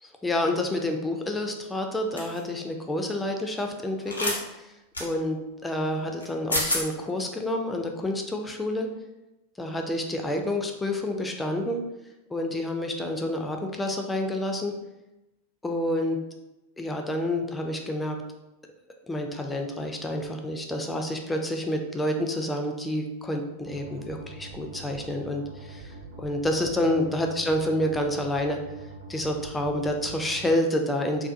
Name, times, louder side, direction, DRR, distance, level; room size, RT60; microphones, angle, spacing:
voice 1, 0.0-4.7 5.0-8.9 9.6-11.8 12.3-14.7 15.6-16.2 16.8-18.2 19.1-28.6 29.1-31.3, left 1 dB, 10° left, 3 dB, 0.3 m, -28 dB
sound 1, 2.2-2.4 4.1-4.4 4.9-5.1 6.2-6.3 6.5-6.8, left 1 dB, 80° left, 0.5 m, -27 dB
sound 2, 23.7-30.5, right 3 dB, 45° right, 0.6 m, -43 dB
2.6 x 2.1 x 2.5 m, 0.97 s
figure-of-eight pair, 90°, 0 cm